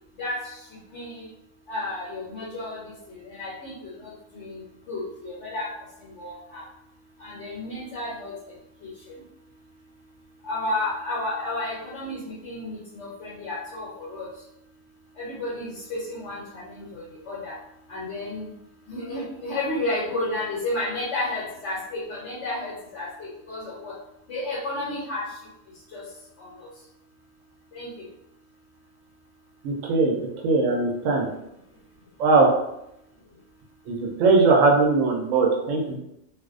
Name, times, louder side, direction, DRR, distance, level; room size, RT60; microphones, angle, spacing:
voice 1, 0.2-0.6 0.9-1.3 1.7-5.7 6.0-6.6 7.2-8.3 8.8-9.1 10.4-14.3 15.2-17.5 17.9-18.5 18.9-23.9 24.3-25.4 25.9-26.0 26.4-26.7 27.7-27.9, left 2 dB, 70° left, -7 dB, 1.0 m, -32 dB
voice 2, 29.6-30.2 30.4-31.3 32.2-32.5 33.9-36.0, right 3 dB, 90° right, 0 dB, 1.0 m, -20 dB
2.5 x 2.0 x 2.4 m, 0.82 s
omnidirectional pair, 1.3 m